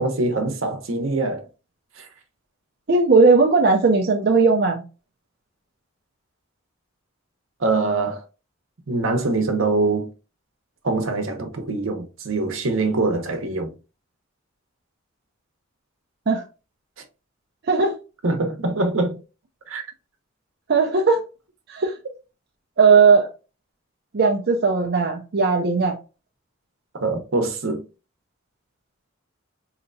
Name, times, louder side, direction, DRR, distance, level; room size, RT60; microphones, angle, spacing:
voice 1, 0.0-1.4 2.0-2.1 7.6-8.2 8.9-10.1 10.8-13.7 18.2-19.2 19.7-19.8 27.0-27.8, right 3 dB, 85° right, 0.9 m, -23 dB
voice 2, 2.9-4.8 16.3-16.4 17.6-18.0 20.7-21.3 21.7-21.8 22.8-23.3 24.1-26.0, right 4 dB, 55° right, 0.6 m, -17 dB
4.3 x 2.9 x 2.6 m
head